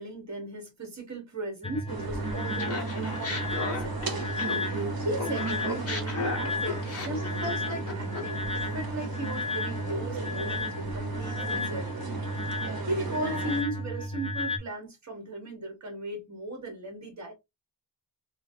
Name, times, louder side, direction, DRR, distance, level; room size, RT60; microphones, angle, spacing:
voice 1, 0.0-4.0 4.7-12.1 12.4-17.3, right 1 dB, 40° right, 1.3 m, -37 dB
sound 1, 1.6-14.6, left 1 dB, 15° left, 0.5 m, -33 dB
sound 2, 1.9-13.6, right 4 dB, 55° right, 0.9 m, -37 dB
Laughter, 2.6-4.9 5.2-8.4, left 4 dB, 30° left, 1.2 m, -35 dB
3.1 x 2.5 x 2.6 m
wide cardioid pair, 90°, 44 cm